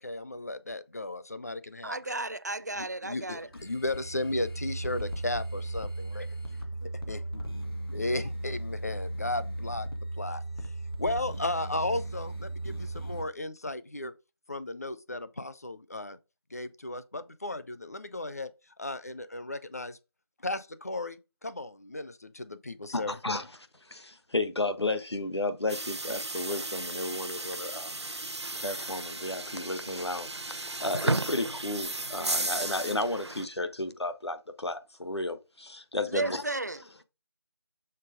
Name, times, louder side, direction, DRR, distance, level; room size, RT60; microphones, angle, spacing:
voice 1, 0.0-2.2 2.8-6.3 7.1-7.4 7.9-9.9 10.2-10.4 11.0-14.1 14.5-16.2 16.5-18.5 18.8-20.0 20.4-23.2, left 2 dB, 35° left, 0.5 m, -35 dB
voice 2, 1.8-3.5 36.0-37.0, right 2 dB, 40° right, 0.4 m, -34 dB
sound 1, 3.3-13.2, right 1 dB, 60° left, 1.6 m, -36 dB
voice 3, 22.9-23.5 23.9-27.9 28.5-36.4, left 2 dB, 75° left, 1.3 m, -33 dB
sound 2, 25.7-33.5, right 2 dB, 90° right, 0.7 m, -34 dB
6.6 x 3.8 x 5.0 m
figure-of-eight pair, 170°, 14 cm